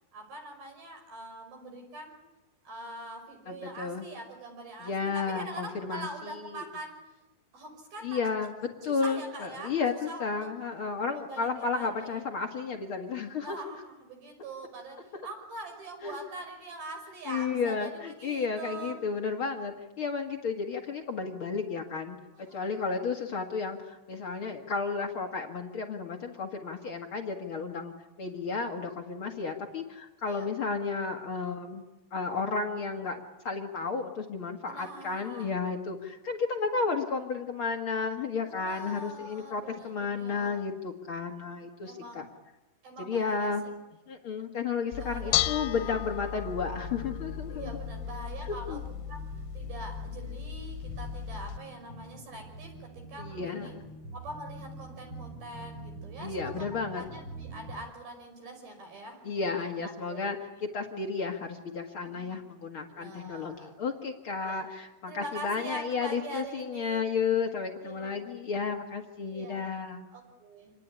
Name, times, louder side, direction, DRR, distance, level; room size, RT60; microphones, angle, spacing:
voice 1, 0.1-2.1 2.7-7.0 7.5-8.2 8.8-9.7 10.1-10.3 11.2-12.2 13.4-19.0 22.3-22.7 28.2-28.3 30.3-30.5 34.7-35.5 38.4-40.7 41.9-42.2 42.8-43.5 45.0-45.4 45.7-46.5 47.5-48.8 49.1-49.2 49.5-53.7 54.1-56.7 56.9-60.4 62.0-62.3 62.9-63.7 64.4-64.7 65.1-67.0 67.8-68.2 69.3-69.6 70.1-70.7, right 2 dB, 50° right, 3 dB, 7.5 m, -43 dB
voice 2, 3.4-4.0 4.8-6.6 8.0-8.5 8.8-13.6 16.0-16.2 17.2-31.8 32.1-42.3 43.0-43.6 44.1-47.7 48.7-48.8 53.2-53.8 56.2-57.0 59.2-60.4 60.6-70.0, left 5 dB, 70° left, 3 dB, 1.2 m, -33 dB
Bell / Dishes pots and pans, 44.9-51.6, left 11 dB, 90° left, 3.5 m, -35 dB
sound 1, 46.8-57.7, right 2 dB, 25° right, 8.7 m, -46 dB
27.5 x 20.0 x 9.9 m, 1.0 s
omnidirectional pair, 5.4 m